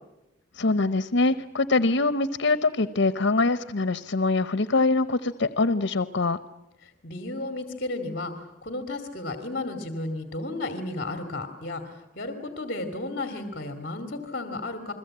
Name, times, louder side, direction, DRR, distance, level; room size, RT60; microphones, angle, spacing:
voice 1, 0.5-6.4, left 3 dB, 90° left, 13 dB, 0.9 m, -24 dB
voice 2, 6.8-14.9, left 2 dB, 50° left, 6 dB, 2.4 m, -33 dB
29.5 x 21.5 x 8.8 m, 0.92 s
head